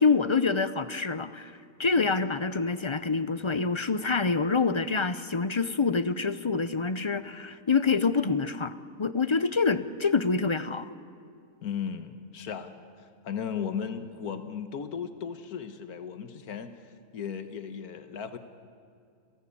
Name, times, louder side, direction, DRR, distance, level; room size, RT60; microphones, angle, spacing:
voice 1, 0.0-1.5 1.8-8.7 9.0-10.9, left 4 dB, 40° left, 13 dB, 0.4 m, -26 dB
voice 2, 11.6-12.7 13.0-18.4, left 7 dB, 90° left, 9 dB, 1.7 m, -36 dB
29.5 x 17.0 x 8.6 m, 2.3 s
omnidirectional pair, 1.5 m